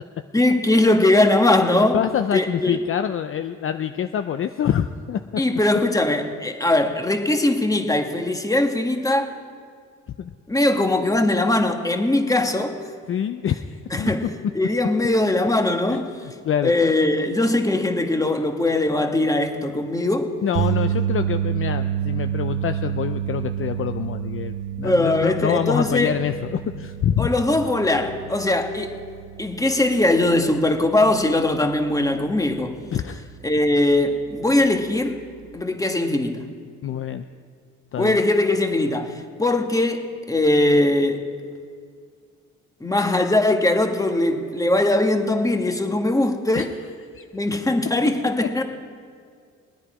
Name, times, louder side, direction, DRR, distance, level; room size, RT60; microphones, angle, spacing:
voice 1, 0.3-2.0 2.3-2.8 5.4-9.3 10.5-12.8 13.9-14.3 14.5-16.1 16.6-20.3 24.8-26.1 27.2-28.9 29.4-32.8 33.4-35.2 35.5-36.4 38.0-41.2 42.8-46.7 47.3-48.6, left 2 dB, 10° left, 5 dB, 1.4 m, -20 dB
voice 2, 1.9-5.4 10.2-10.3 13.1-14.1 15.9-16.7 20.4-27.3 32.9-33.3 36.8-37.2 37.9-38.2 46.5-46.7 47.1-47.2, left 9 dB, 45° left, 9 dB, 0.5 m, -26 dB
sound 1, 20.6-32.8 33.1-33.4 35.6-35.7, right 10 dB, 70° right, 0.7 m, -29 dB
19.5 x 9.7 x 4.9 m, 2.2 s
cardioid pair, 90°, 30 cm